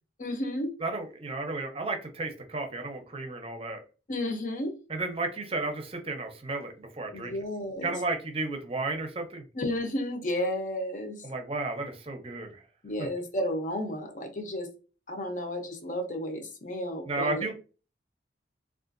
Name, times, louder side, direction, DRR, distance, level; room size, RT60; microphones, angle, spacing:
voice 1, 0.2-0.7 4.1-4.7 7.1-7.9 9.5-11.2 12.8-14.7 15.1-17.5, left 1 dB, 45° left, 5 dB, 0.7 m, -32 dB
voice 2, 0.8-3.8 4.9-7.3 7.8-9.4 11.2-12.6 13.0-13.1 17.1-17.5, right 3 dB, 30° right, 5 dB, 0.6 m, -33 dB
3.6 x 2.4 x 2.5 m, 0.34 s
head